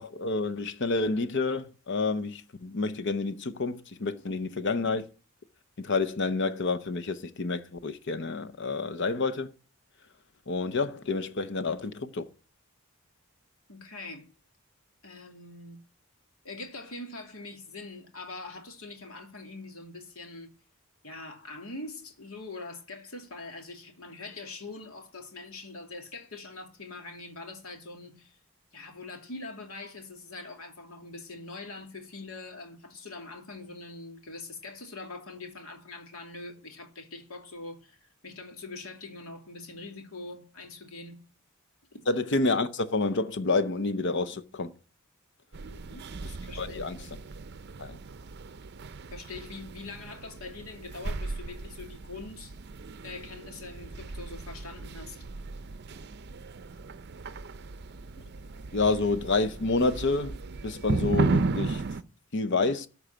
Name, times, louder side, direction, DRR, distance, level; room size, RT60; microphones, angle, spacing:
voice 1, 0.0-5.1 5.8-9.5 10.5-12.3 42.1-44.7 46.6-47.1 47.8-48.0 58.7-60.4 60.6-61.8 62.3-62.9, left 3 dB, 55° left, 0.8 m, -29 dB
voice 2, 13.7-14.3 15.0-15.8 16.4-20.5 21.0-28.4 28.7-41.2 41.9-42.0 45.7-46.1 46.5-46.9 49.1-52.5 53.0-55.3, left 3 dB, 80° left, 2.6 m, -43 dB
sound 1, 45.5-62.0, right 3 dB, 50° right, 0.6 m, -35 dB
13.5 x 4.7 x 8.8 m
head